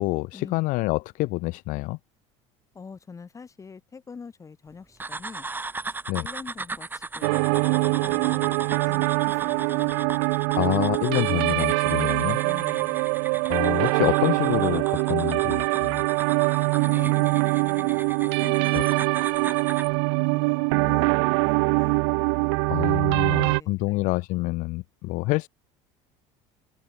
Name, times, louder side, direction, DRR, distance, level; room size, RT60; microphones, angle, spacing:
voice 1, 0.0-2.0 6.1-6.3 10.5-12.4 13.5-16.0 18.7-18.8 22.7-25.5, left 22 dB, 65° left, 1.1 m, -27 dB
voice 2, 2.7-5.5 5.9-7.4 8.0-9.9 12.4-13.0 16.8-19.0 20.2-22.0 23.3-24.1 25.2-25.4, left 5 dB, 20° left, 3.4 m, -44 dB
sound 1, 5.0-19.9, right 3 dB, 15° right, 3.0 m, -38 dB
sound 2, 7.2-23.6, right 33 dB, 80° right, 1.2 m, -23 dB
supercardioid pair, 115°, 14 cm